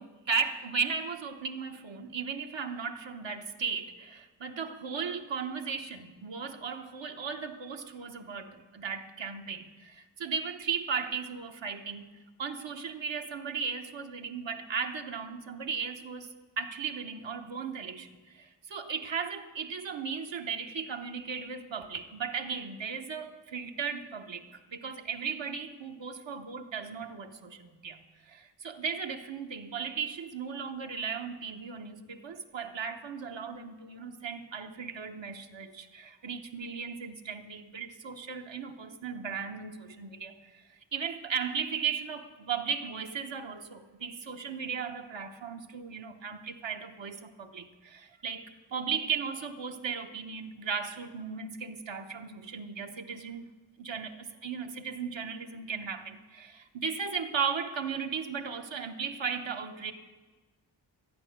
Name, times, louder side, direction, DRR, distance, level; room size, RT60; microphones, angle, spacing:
voice 1, 0.0-12.1 12.4-40.6 40.9-53.5 53.8-59.9, right 6 dB, 70° right, 5 dB, 1.0 m, -36 dB
13.5 x 9.2 x 6.5 m, 1.3 s
wide cardioid pair, 75°, 47 cm